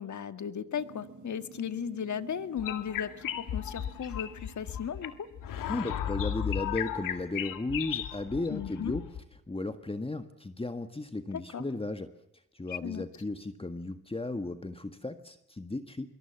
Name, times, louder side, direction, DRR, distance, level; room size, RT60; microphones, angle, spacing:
voice 1, 0.0-5.3 8.5-9.0 11.5-11.6 12.7-13.0, left 8 dB, 60° left, 11 dB, 1.8 m, -36 dB
sound 1, 0.7-5.9, right 3 dB, 65° right, 6.1 m, -52 dB
sound 2, 2.6-9.2, left 10 dB, 85° left, 2.1 m, -35 dB
voice 2, 5.7-9.1 9.5-12.1 12.5-16.1, left 2 dB, 15° left, 9 dB, 1.7 m, -35 dB
25.5 x 23.0 x 7.2 m, 0.84 s
supercardioid pair, 60°, 32 cm